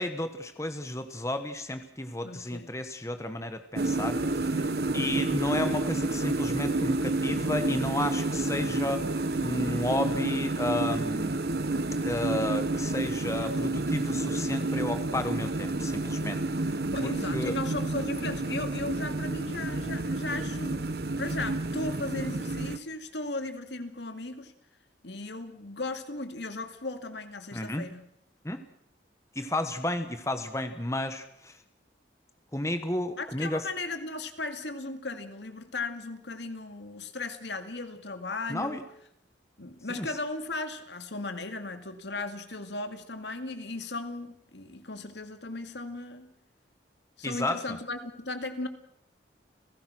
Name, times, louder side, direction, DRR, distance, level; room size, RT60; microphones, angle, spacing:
voice 1, 0.0-4.5 4.9-11.3 12.0-17.6 27.5-27.9 28.4-28.6 29.3-31.6 32.5-33.7 38.5-38.8 39.9-40.1 47.2-47.8, left 1 dB, 15° left, 9 dB, 1.2 m, -32 dB
voice 2, 2.2-2.7 16.9-20.8 21.2-24.5 25.0-28.0 33.2-38.8 39.6-46.3 47.2-48.7, left 2 dB, 75° left, 8 dB, 2.2 m, -36 dB
sound 1, 3.8-22.8, right 2 dB, 60° right, 0.9 m, -30 dB
30.0 x 17.0 x 6.2 m, 0.73 s
head